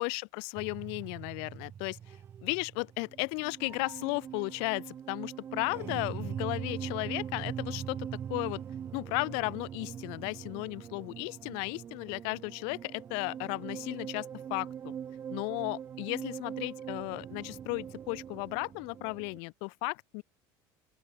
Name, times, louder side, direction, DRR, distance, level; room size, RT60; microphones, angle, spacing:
voice 1, 0.0-2.2 2.4-8.6 8.9-15.0 15.3-20.2, left 40 dB or more, 65° left, 4.8 m, -35 dB
sound 1, 0.6-19.4, right 8 dB, 25° right, 1.3 m, -42 dB
open air
cardioid pair, 165°, 10 cm